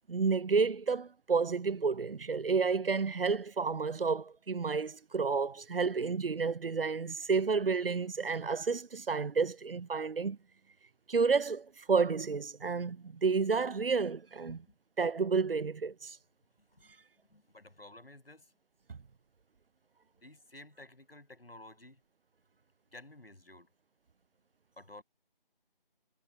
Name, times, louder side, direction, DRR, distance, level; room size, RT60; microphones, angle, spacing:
voice 1, 0.1-10.4 11.1-14.6 15.0-16.2, right 5 dB, 70° right, 0.6 m, -30 dB
voice 2, 17.3-18.4 20.2-22.0 22.9-23.7 24.8-25.0, left 2 dB, 85° left, 7.8 m, -52 dB
figure-of-eight pair, 180°, 29 cm